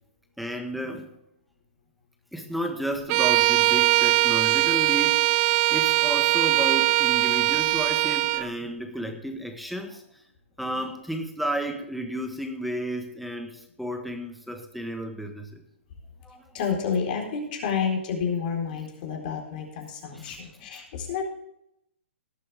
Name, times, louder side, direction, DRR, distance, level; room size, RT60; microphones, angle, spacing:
voice 1, 0.4-1.1 2.3-10.0 10.6-15.6 16.2-16.4 20.1-20.4, right 1 dB, ahead, 4 dB, 1.5 m, -33 dB
Bowed string instrument, 3.1-8.5, right 20 dB, 30° right, 0.3 m, -21 dB
voice 2, 16.5-21.2, left 6 dB, 45° left, 0 dB, 4.1 m, -29 dB
18.5 x 8.4 x 3.5 m, 0.79 s
hypercardioid pair, 145°, 7 cm